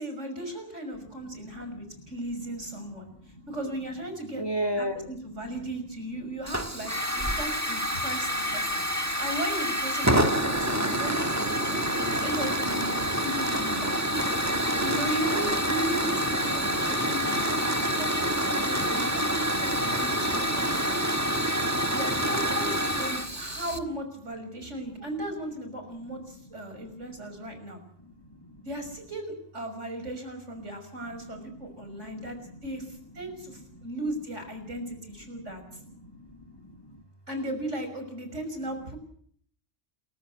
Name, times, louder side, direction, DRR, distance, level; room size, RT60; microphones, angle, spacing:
voice 1, 0.0-3.1 3.5-4.4 4.8-14.0 14.8-20.7 21.9-27.8 28.6-32.4 32.6-35.8 37.3-39.0, right 1 dB, 75° right, 6 dB, 6.4 m, -36 dB
voice 2, 1.0-3.5 4.3-5.5 6.4-6.6 7.3-7.4 7.9-8.3 8.6-9.2 24.9-25.1 26.0-27.6 28.0-28.7 31.0-33.8 34.8-35.0 35.3-37.0, equal, 20° left, 6 dB, 1.9 m, -42 dB
Hiss / Fire, 6.5-23.8, right 1 dB, 15° right, 1.6 m, -27 dB
28.0 x 14.5 x 8.4 m, 0.62 s
omnidirectional pair, 1.3 m